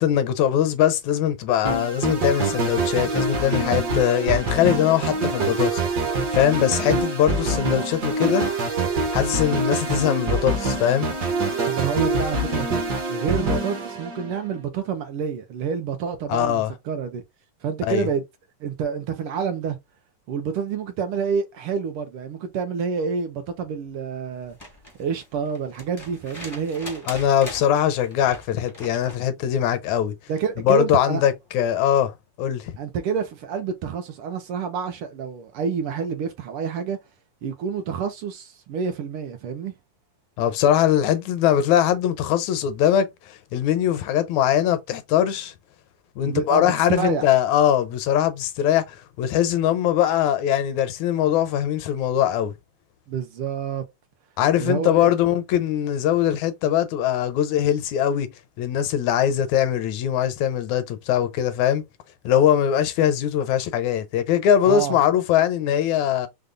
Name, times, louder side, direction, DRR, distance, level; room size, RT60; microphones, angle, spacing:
voice 1, 0.0-5.8 6.3-8.5 9.1-11.1 16.3-16.7 17.8-18.1 27.1-30.2 30.6-32.7 40.4-45.5 46.2-52.5 54.4-58.3 58.6-61.8 62.3-66.3, left 10 dB, 80° left, 1.9 m, -21 dB
sound 1, 1.6-14.6, right 2 dB, 55° right, 1.1 m, -25 dB
voice 2, 11.7-17.2 17.6-18.2 18.6-19.8 20.3-24.6 25.0-27.1 30.3-31.2 32.8-37.0 37.4-39.7 46.2-47.2 53.1-53.8 54.6-55.1 64.7-65.0, right 6 dB, 80° right, 1.2 m, -28 dB
sound 2, 24.4-29.3 30.9-31.0, left 1 dB, 15° left, 0.6 m, -41 dB
5.3 x 2.3 x 3.7 m
omnidirectional pair, 3.5 m